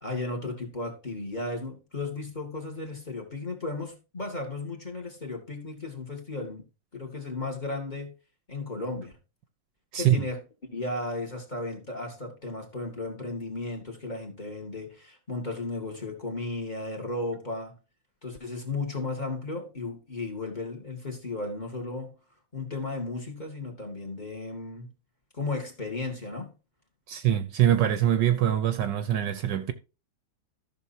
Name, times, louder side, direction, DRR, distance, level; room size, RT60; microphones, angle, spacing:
voice 1, 0.0-6.6 6.9-8.1 8.5-9.2 10.0-10.4 10.7-17.8 18.2-22.2 22.5-24.9 25.3-26.5, left 2 dB, 20° left, 2.3 m, -35 dB
voice 2, 27.1-29.7, right 11 dB, 70° right, 1.3 m, -23 dB
14.5 x 6.2 x 2.8 m
omnidirectional pair, 2.1 m